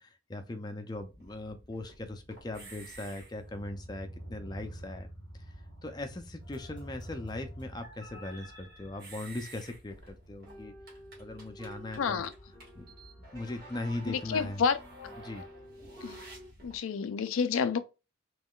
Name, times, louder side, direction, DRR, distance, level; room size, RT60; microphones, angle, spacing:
voice 1, 0.0-5.1 5.8-10.7 11.2-12.2 12.8-12.9 13.3-14.6 15.2-15.4, left 2 dB, 20° left, 0.4 m, -39 dB
sound 1, 0.9-16.8, right 1 dB, 50° right, 1.5 m, -49 dB
sound 2, 6.4-16.5, equal, 20° right, 1.3 m, -54 dB
voice 2, 11.9-12.3 14.1-14.8 16.0-16.2 16.6-17.8, left 6 dB, 85° left, 0.4 m, -29 dB
3.6 x 3.0 x 2.3 m
head